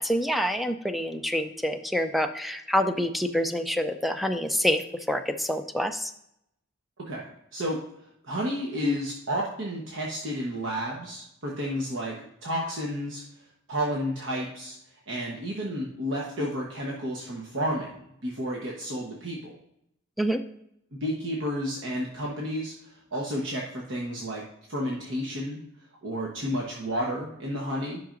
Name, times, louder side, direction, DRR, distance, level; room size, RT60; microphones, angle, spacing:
voice 1, 0.0-6.1 8.8-9.0 20.2-20.4, equal, ahead, 8 dB, 0.4 m, -27 dB
voice 2, 7.0-7.8 8.2-12.2 12.4-13.2 13.7-14.8 15.1-19.5 20.9-24.4 24.7-25.6 26.0-28.0, equal, 65° right, -2 dB, 1.1 m, -31 dB
10.5 x 5.8 x 2.5 m, 0.77 s
head